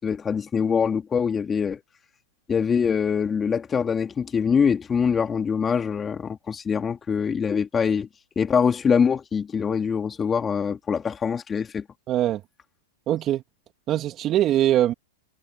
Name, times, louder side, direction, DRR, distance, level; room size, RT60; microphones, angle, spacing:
voice 1, 0.0-1.8 2.5-8.1 8.4-11.8, left 6 dB, 20° left, 3.8 m, -24 dB
voice 2, 12.1-12.4 13.1-13.4 13.9-14.9, right 12 dB, 35° right, 2.4 m, -22 dB
hypercardioid pair, 120°, 0 cm